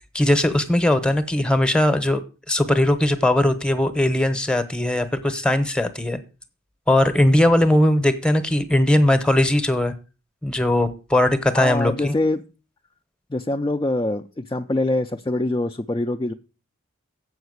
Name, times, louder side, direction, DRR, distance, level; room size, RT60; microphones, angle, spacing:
voice 1, 0.1-2.2 2.5-6.2 6.9-9.9 10.4-12.1, left 1 dB, 5° left, 10 dB, 0.9 m, -19 dB
voice 2, 11.5-12.4 13.3-16.3, left 2 dB, 20° left, 4 dB, 0.4 m, -24 dB
7.9 x 5.8 x 7.9 m, 0.33 s
head